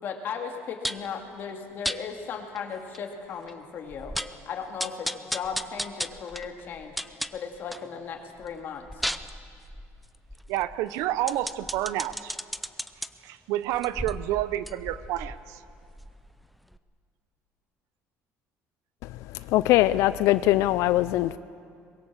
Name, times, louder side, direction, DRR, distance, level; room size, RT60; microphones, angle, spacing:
voice 1, 0.0-4.2 4.5-7.0 7.3-9.0, left 6 dB, 40° left, 4 dB, 2.2 m, -36 dB
sound 1, 0.8-1.1 1.8-2.0 2.6-2.7 2.9-3.0 3.5-3.6 3.9-4.4 4.8-7.9 8.3-13.1 13.7-16.4 16.7-16.8, equal, ahead, 0.5 m, -35 dB
voice 2, 10.5-12.3 13.2-15.6, right 13 dB, 80° right, 15 dB, 0.8 m, -29 dB
voice 3, 19.5-21.4, left 15 dB, 70° left, 15 dB, 0.5 m, -21 dB
23.0 x 21.5 x 7.4 m, 2.3 s
cardioid pair, 170°, 5 cm